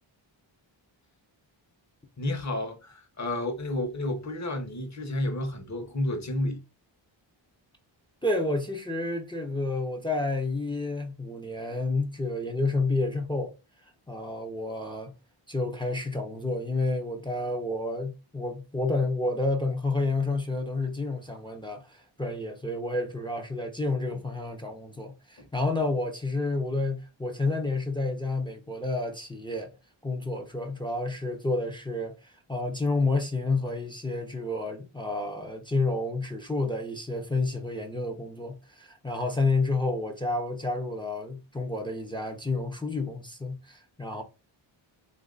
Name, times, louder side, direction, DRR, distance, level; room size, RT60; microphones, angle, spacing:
voice 1, 2.2-6.6 25.4-25.5, left 1 dB, 35° left, 1.1 m, -31 dB
voice 2, 8.2-13.5 14.1-15.1 15.5-29.7 30.0-44.2, left 2 dB, 10° left, 0.7 m, -30 dB
2.8 x 2.6 x 3.9 m
cardioid pair, 80°, 48 cm